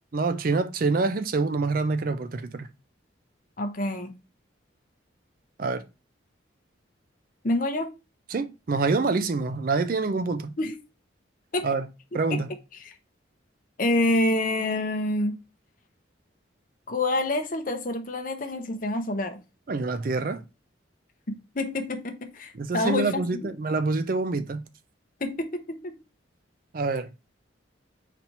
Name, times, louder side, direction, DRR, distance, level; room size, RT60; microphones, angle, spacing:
voice 1, 0.1-2.7 5.6-5.8 8.3-10.5 11.6-11.9 12.1-12.5 19.7-20.4 22.5-24.6 26.7-27.1, right 3 dB, 45° right, 0.4 m, -26 dB
voice 2, 3.6-4.1 7.4-7.9 10.6-10.8 11.5-11.7 12.3-12.4 12.7-13.0 13.8-15.4 16.9-19.4 21.5-23.5 25.2-26.0, left 1 dB, 45° left, 0.7 m, -27 dB
4.2 x 2.9 x 4.4 m
head